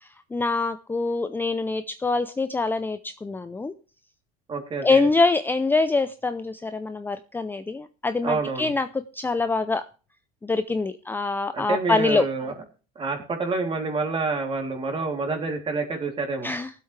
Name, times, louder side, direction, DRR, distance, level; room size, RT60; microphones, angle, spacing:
voice 1, 0.0-3.7 4.8-9.9 10.4-12.3 16.4-16.7, left 3 dB, 10° left, 11 dB, 0.5 m, -24 dB
voice 2, 4.5-5.1 8.2-8.7 11.5-12.5 12.9-16.5, right 3 dB, 30° right, 3 dB, 3.2 m, -28 dB
19.5 x 8.1 x 3.3 m, 0.36 s
supercardioid pair, 115°, 19 cm